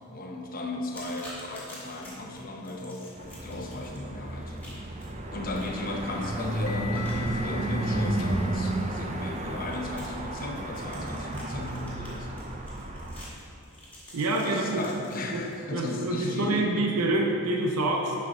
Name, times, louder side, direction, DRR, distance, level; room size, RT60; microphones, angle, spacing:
voice 1, 0.1-4.6 5.3-12.4 14.4-16.9, left 2 dB, 40° left, 1 dB, 0.8 m, -36 dB
sound 1, 0.9-15.5, left 1 dB, 10° left, 1.8 m, -49 dB
sound 2, 3.2-13.3, right 1 dB, 30° right, 0.5 m, -32 dB
sound 3, 5.6-10.4, left 5 dB, 85° left, 0.9 m, -44 dB
voice 2, 14.1-14.8 15.3-15.5 15.7-18.1, right 2 dB, 90° right, 1 dB, 0.7 m, -27 dB
11.0 x 5.5 x 3.8 m, 2.7 s
head